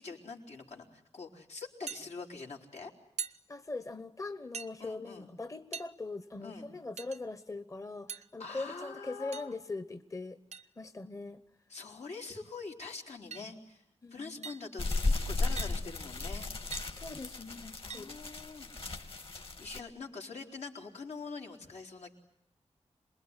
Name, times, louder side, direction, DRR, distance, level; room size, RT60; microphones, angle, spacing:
voice 1, 0.0-2.9 4.8-5.3 6.4-6.7 8.4-9.5 11.7-13.8 14.1-16.5 17.8-18.7 19.0-22.1, left 4 dB, 80° left, 2 dB, 4.0 m, -44 dB
sound 1, 1.9-2.0 3.2-3.4 4.5-4.7 5.7-5.9 7.0-7.2 8.1-8.3 9.3-9.6 10.5-10.7 11.7-11.8 12.3-12.4 13.3-13.5 14.4-14.7 15.6-15.8 16.7-16.9 17.9-18.1, right 6 dB, 90° right, 1.0 m, -41 dB
voice 2, 3.5-10.4 10.8-11.4 14.0-14.5 16.9-18.2, left 3 dB, 30° left, 12 dB, 1.0 m, -41 dB
sound 2, 14.8-19.8, left 3 dB, 55° left, 2.8 m, -35 dB
27.5 x 21.0 x 9.8 m, 0.80 s
wide cardioid pair, 115°, 11 cm